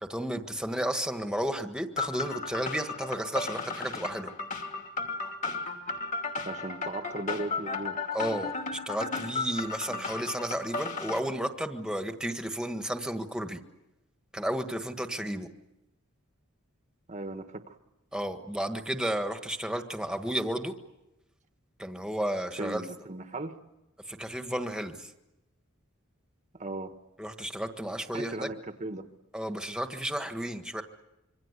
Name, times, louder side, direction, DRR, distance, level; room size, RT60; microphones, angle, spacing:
voice 1, 0.1-4.3 8.1-13.6 14.3-15.5 18.1-20.7 21.8-22.8 24.1-25.1 27.2-28.5 29.3-30.8, right 1 dB, 5° right, 6 dB, 1.6 m, -32 dB
sound 1, 2.0-11.2, left 4 dB, 35° left, 2.6 m, -34 dB
voice 2, 6.5-8.0 9.9-10.0 17.1-17.8 22.6-23.5 26.5-26.9 28.1-29.1, right 2 dB, 35° right, 7 dB, 1.4 m, -37 dB
26.5 x 24.5 x 8.3 m, 0.94 s
head